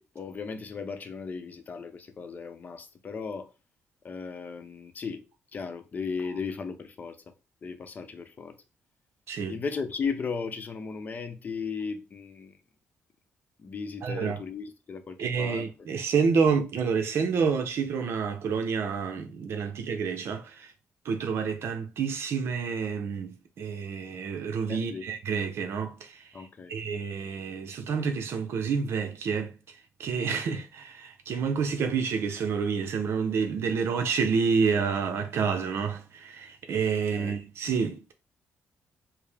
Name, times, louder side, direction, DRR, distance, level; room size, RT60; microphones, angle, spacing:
voice 1, 0.0-3.5 4.0-5.2 5.5-7.3 7.6-8.6 9.5-12.6 13.6-15.7 24.7-25.1 26.3-26.7 37.1-37.4, left 5 dB, 35° left, 0.6 m, -36 dB
voice 2, 9.3-9.6 14.0-14.4 15.2-20.7 21.0-26.2 26.7-29.5 30.0-38.1, right 5 dB, 65° right, 0.6 m, -28 dB
4.6 x 2.1 x 3.4 m
cardioid pair, 110°, 5 cm